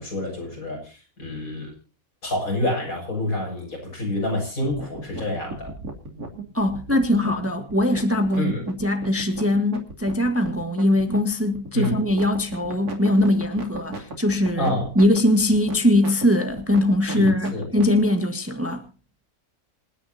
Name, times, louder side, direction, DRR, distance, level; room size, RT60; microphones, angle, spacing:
voice 1, 0.0-1.7 2.2-5.7 8.4-8.7 11.7-12.0 14.6-14.9 17.1-17.7, left 1 dB, 65° left, 7.5 m, -28 dB
sound 1, 4.6-18.0, right 2 dB, 85° right, 3.3 m, -36 dB
voice 2, 6.5-8.5 8.8-18.8, left 1 dB, 10° right, 1.5 m, -21 dB
27.5 x 10.0 x 2.8 m
omnidirectional pair, 1.6 m